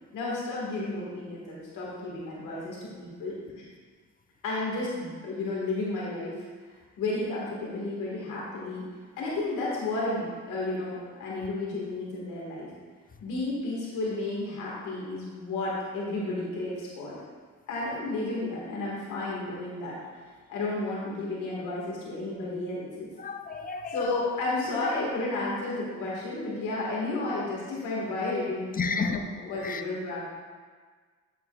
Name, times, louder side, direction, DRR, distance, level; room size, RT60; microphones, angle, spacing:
voice 1, 0.1-3.6 4.4-6.3 7.0-8.8 9.2-12.7 13.2-17.2 17.7-20.0 20.5-23.1 23.9-30.2, left 2 dB, 85° left, -5 dB, 2.1 m, -32 dB
voice 2, 23.2-24.0 28.8-29.2 29.6-29.8, left 4 dB, 30° left, 7 dB, 0.6 m, -30 dB
10.0 x 7.9 x 2.5 m, 1.5 s
cardioid pair, 90°, 30 cm